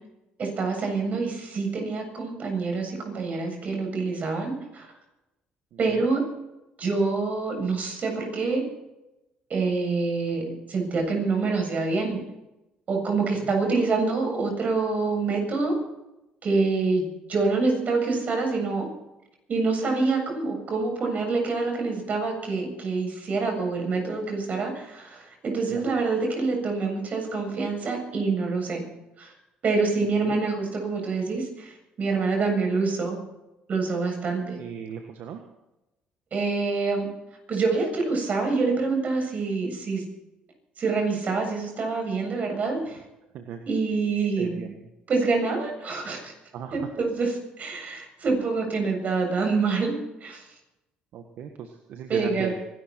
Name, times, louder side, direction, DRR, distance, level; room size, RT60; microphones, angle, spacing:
voice 1, 0.4-4.9 5.8-6.2 6.8-8.6 9.5-10.4 10.7-12.2 12.9-15.7 16.4-18.9 19.5-28.8 29.2-29.3 29.6-33.2 33.7-34.6 36.3-37.1 37.5-40.0 40.8-43.0 43.7-44.7 45.1-46.3 46.7-49.9 50.2-50.5 52.1-52.6, right 4 dB, 50° right, 2 dB, 7.6 m, -26 dB
voice 2, 34.6-35.4 43.3-43.6 44.4-44.7 46.5-46.9 51.1-52.6, right 8 dB, 70° right, 6 dB, 1.5 m, -36 dB
25.0 x 13.0 x 4.5 m, 0.94 s
supercardioid pair, 80°, 3 cm